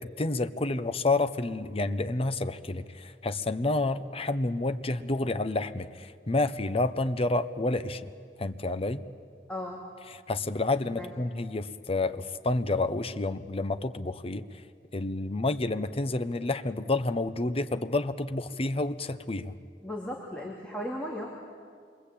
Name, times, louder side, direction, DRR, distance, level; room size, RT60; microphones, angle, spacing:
voice 1, 0.0-8.1 8.4-9.0 10.3-14.4 14.9-19.5, left 2 dB, 35° left, 10 dB, 0.9 m, -29 dB
voice 2, 9.5-9.8 10.9-11.1 19.8-21.3, left 1 dB, 5° left, -3 dB, 2.8 m, -36 dB
27.5 x 23.0 x 8.6 m, 2.2 s
head